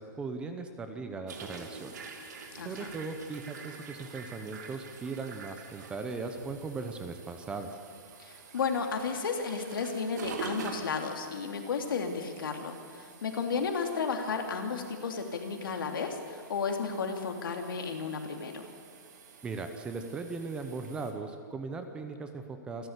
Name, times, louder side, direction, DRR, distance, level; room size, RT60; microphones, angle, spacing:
voice 1, 0.0-1.9 2.6-7.7 19.4-22.9, right 4 dB, 10° right, 7 dB, 0.9 m, -38 dB
sound 1, 1.3-21.1, right 5 dB, 55° right, 2.8 m, -47 dB
voice 2, 2.5-2.9 8.2-18.7, left 5 dB, 85° left, 4 dB, 3.0 m, -33 dB
27.5 x 12.5 x 8.3 m, 2.3 s
hypercardioid pair, 175°, 11 cm